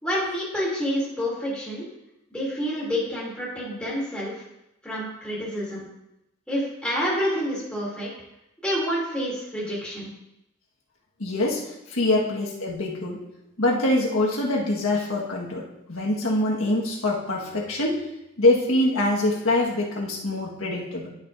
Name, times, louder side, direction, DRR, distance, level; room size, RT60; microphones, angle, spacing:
voice 1, 0.0-1.9 2.3-4.3 4.8-5.8 6.5-8.1 8.6-10.1, equal, 5° left, -7 dB, 2.9 m, -28 dB
voice 2, 11.2-11.6 11.9-13.2 13.6-18.0 18.4-21.1, left 1 dB, 90° left, -2 dB, 1.6 m, -24 dB
11.0 x 6.6 x 2.6 m, 0.86 s
head